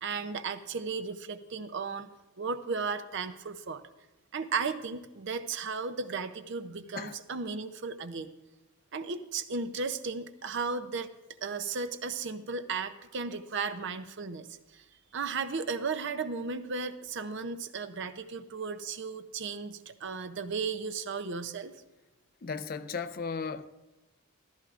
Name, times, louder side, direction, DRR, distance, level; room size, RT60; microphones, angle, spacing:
voice 1, 0.0-2.1 2.4-3.8 4.3-8.3 8.9-11.1 11.4-14.8 15.1-21.7, right 4 dB, 55° right, 0.6 m, -35 dB
voice 2, 22.4-23.7, left 5 dB, 40° left, 0.4 m, -35 dB
14.5 x 13.5 x 2.5 m
head